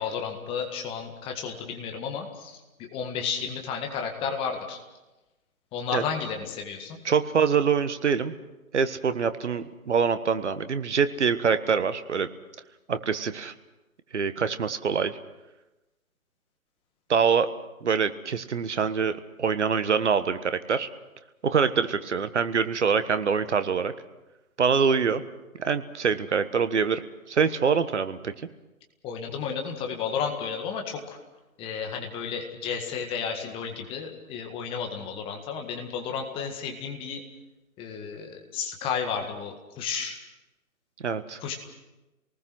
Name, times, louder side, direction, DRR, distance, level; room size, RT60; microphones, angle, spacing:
voice 1, 0.0-4.8 5.7-7.0 29.0-31.2 31.6-37.2 37.8-40.2 41.4-41.6, left 6 dB, 10° left, 3 dB, 1.8 m, -32 dB
voice 2, 7.0-8.4 8.7-12.3 12.9-13.5 14.1-15.2 17.1-17.5 17.8-20.9 21.4-23.9 24.6-25.2 25.6-27.0 27.3-28.3 41.0-41.4, right 6 dB, 55° right, 11 dB, 1.4 m, -25 dB
28.5 x 19.5 x 6.2 m, 1.0 s
figure-of-eight pair, 140°, 43 cm